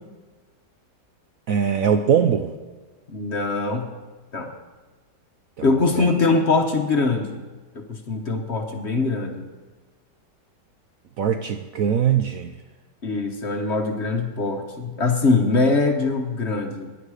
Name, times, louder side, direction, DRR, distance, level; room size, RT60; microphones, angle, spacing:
voice 1, 1.5-2.5 5.6-5.7 6.0-6.1 11.2-12.6, right 8 dB, 65° right, 7 dB, 0.8 m, -21 dB
voice 2, 3.1-3.9 4.3-4.5 5.6-7.4 7.7-9.5 13.0-16.9, left 3 dB, 45° left, 4 dB, 1.2 m, -22 dB
16.5 x 10.5 x 4.9 m, 1.3 s
omnidirectional pair, 1.9 m